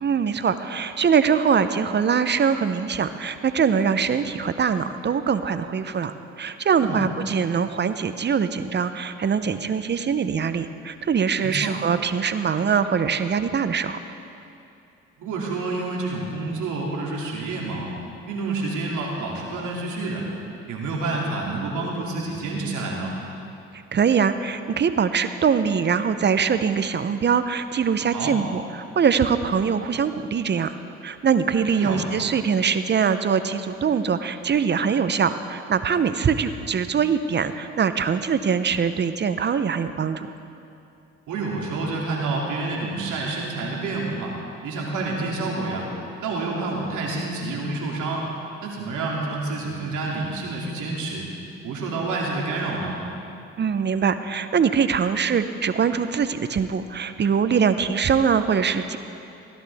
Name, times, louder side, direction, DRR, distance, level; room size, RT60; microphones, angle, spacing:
voice 1, 0.0-14.0 23.9-28.6 29.0-30.8 31.0-40.3 53.6-59.0, right 6 dB, 35° right, 11 dB, 0.6 m, -23 dB
voice 2, 11.4-11.8 15.2-17.9 18.3-20.3 20.7-23.1 28.1-28.4 31.7-32.0 41.3-44.4 44.6-45.9 46.2-48.3 48.6-51.3 51.6-53.0, right 3 dB, 70° right, -3 dB, 2.6 m, -28 dB
16.0 x 11.5 x 3.5 m, 2.7 s
supercardioid pair, 60°, 32 cm